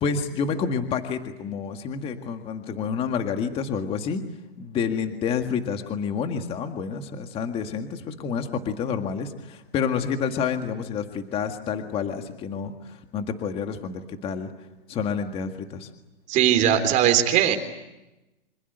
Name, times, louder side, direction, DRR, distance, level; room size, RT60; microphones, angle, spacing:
voice 1, 0.0-4.2 4.6-14.5 14.9-15.9, left 6 dB, 20° left, 6 dB, 1.8 m, -29 dB
voice 2, 16.3-17.6, right 10 dB, 25° right, 8 dB, 3.6 m, -19 dB
27.0 x 26.0 x 8.0 m, 0.97 s
hypercardioid pair, 160°, 32 cm